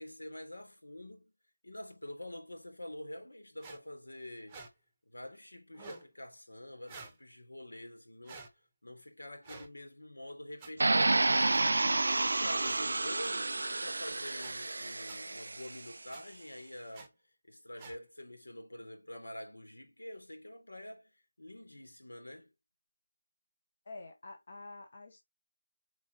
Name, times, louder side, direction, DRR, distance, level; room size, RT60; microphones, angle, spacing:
voice 1, 0.0-1.3 1.6-4.6 5.1-8.4 8.8-17.1 17.4-22.5, left 1 dB, 75° left, 3.4 m, -47 dB
sound 1, 3.6-3.8 4.5-4.7 5.7-6.1 6.9-7.2 8.2-8.5 9.4-9.7 10.6-10.7 11.5-11.6 12.6-12.8 13.2-13.3 14.4-14.5 15.1-15.2 16.1-16.2 16.9-17.1 17.8-18.0, right 4 dB, 10° right, 1.1 m, -49 dB
sound 2, 10.8-15.8, right 2 dB, 55° right, 0.3 m, -30 dB
voice 2, 23.8-25.2, left 2 dB, 35° left, 1.2 m, -48 dB
7.1 x 4.7 x 2.9 m
figure-of-eight pair, 170°, 0 cm